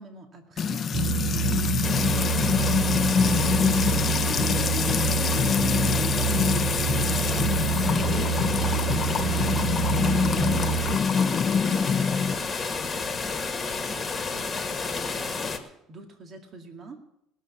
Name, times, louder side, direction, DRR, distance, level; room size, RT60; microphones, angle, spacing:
voice 1, 0.0-13.2 13.5-17.0, right 3 dB, 45° right, 4 dB, 2.1 m, -47 dB
Music / Water tap faucet / Trickle dribble, 0.6-12.3, left 6 dB, 40° left, 0.8 m, -25 dB
sound 1, 0.9-11.0, right 7 dB, 85° right, 0.6 m, -28 dB
sound 2, 1.8-15.6, left 4 dB, 20° left, 1.7 m, -31 dB
19.5 x 6.9 x 7.0 m, 0.83 s
supercardioid pair, 105°, 0 cm